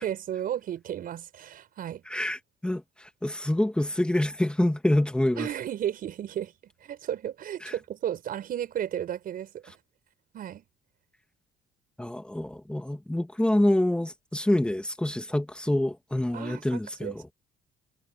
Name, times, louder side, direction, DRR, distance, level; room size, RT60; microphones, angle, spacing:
voice 1, 0.0-2.0 5.4-9.8 10.3-10.6 16.3-17.3, right 10 dB, 60° right, 6.0 m, -34 dB
voice 2, 2.1-5.5 7.6-7.7 12.0-17.2, left 1 dB, 5° left, 2.6 m, -26 dB
cardioid pair, 110°, 17 cm